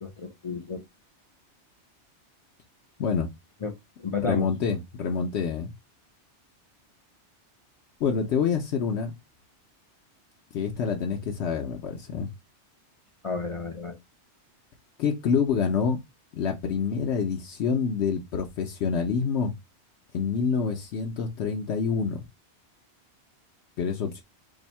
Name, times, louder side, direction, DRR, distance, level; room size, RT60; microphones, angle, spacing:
voice 1, 0.0-0.8 3.6-4.5 13.2-14.0, left 4 dB, 50° left, 0.4 m, -32 dB
voice 2, 4.2-5.7 8.0-9.2 10.5-12.3 15.0-16.0 16.3-19.5 20.1-22.2 23.8-24.2, left 6 dB, 75° left, 0.9 m, -27 dB
2.7 x 2.5 x 4.1 m
omnidirectional pair, 1.2 m